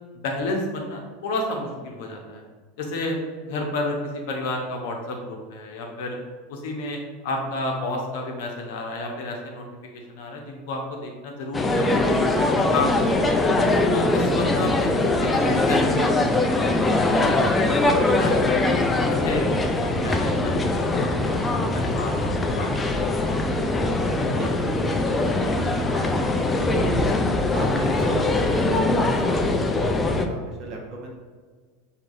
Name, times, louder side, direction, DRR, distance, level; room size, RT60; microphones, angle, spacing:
voice 1, 0.1-2.4 2.8-6.2 6.5-9.6 10.1-13.3 13.9-17.2 17.6-19.5 19.8-21.5 21.7-22.7, left 2 dB, 60° left, 1 dB, 0.7 m, -31 dB
sound 1, 11.5-30.3, left 2 dB, 15° left, 0.4 m, -22 dB
voice 2, 24.0-27.2 27.5-31.1, right 1 dB, 45° right, -1 dB, 0.9 m, -35 dB
6.0 x 2.8 x 2.5 m, 1.5 s
figure-of-eight pair, 80°, 0 cm